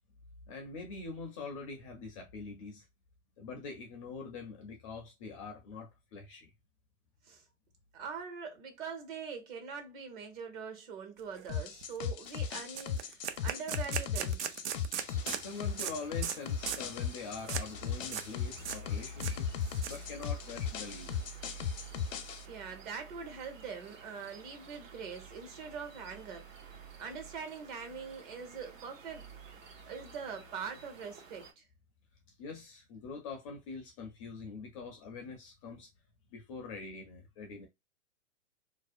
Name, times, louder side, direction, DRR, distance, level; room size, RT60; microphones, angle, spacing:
voice 1, 0.5-2.8 3.4-6.5 15.3-19.5 19.9-21.3 32.4-35.9 36.3-37.7, left 4 dB, 30° left, 0.4 m, -44 dB
voice 2, 7.9-14.4 22.4-26.5 27.0-29.4 29.9-31.6, right 6 dB, 40° right, 0.9 m, -43 dB
sound 1, 11.4-11.5 11.8-12.0 12.3-12.4 12.7-15.4 15.8-15.9 16.2-16.4 16.7-16.9 17.5-17.7 18.0-18.3 18.6-18.8 19.1-20.3, right 9 dB, 65° right, 0.5 m, -38 dB
sound 2, 11.5-22.4, left 7 dB, 85° left, 0.6 m, -37 dB
sound 3, 15.0-31.5, right 3 dB, 85° right, 0.8 m, -51 dB
2.6 x 2.1 x 2.4 m
hypercardioid pair, 135°, 38 cm